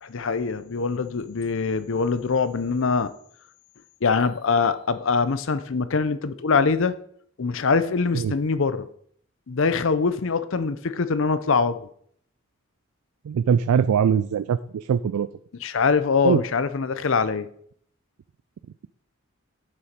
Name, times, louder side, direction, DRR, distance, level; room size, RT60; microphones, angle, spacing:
voice 1, 0.0-3.1 4.0-7.0 7.4-8.9 9.5-11.9 15.6-17.5, left 4 dB, 60° left, 13 dB, 0.6 m, -23 dB
voice 2, 13.3-15.3 16.2-16.4, right 7 dB, 90° right, 14 dB, 0.3 m, -22 dB
7.2 x 6.9 x 5.1 m, 0.65 s
head